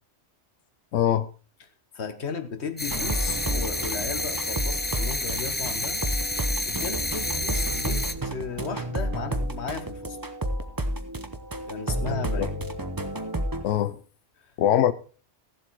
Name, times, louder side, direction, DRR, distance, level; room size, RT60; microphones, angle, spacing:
voice 1, 0.9-1.3 12.1-12.5 13.6-14.0 14.6-14.9, left 11 dB, 85° left, 1.1 m, -23 dB
voice 2, 1.9-6.0 6.6-10.2 11.7-12.5 14.4-14.5, left 5 dB, 65° left, 1.4 m, -35 dB
sound 1, 2.8-8.1, left 2 dB, 10° left, 0.5 m, -30 dB
sound 2, 2.9-13.6, right 1 dB, 20° right, 0.9 m, -31 dB
sound 3, 2.9-7.3, right 2 dB, 70° right, 2.4 m, -48 dB
15.0 x 7.5 x 4.6 m
omnidirectional pair, 1.2 m